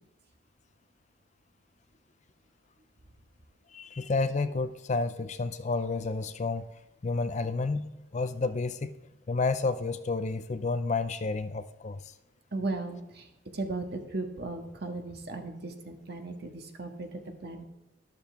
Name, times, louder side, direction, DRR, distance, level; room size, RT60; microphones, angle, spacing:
voice 1, 3.7-6.7 7.0-8.9 9.3-12.0, left 3 dB, 35° left, 12 dB, 0.4 m, -30 dB
voice 2, 12.5-13.3 13.5-17.1 17.4-17.6, right 2 dB, 50° right, 4 dB, 1.6 m, -36 dB
12.5 x 12.0 x 3.4 m, 0.96 s
head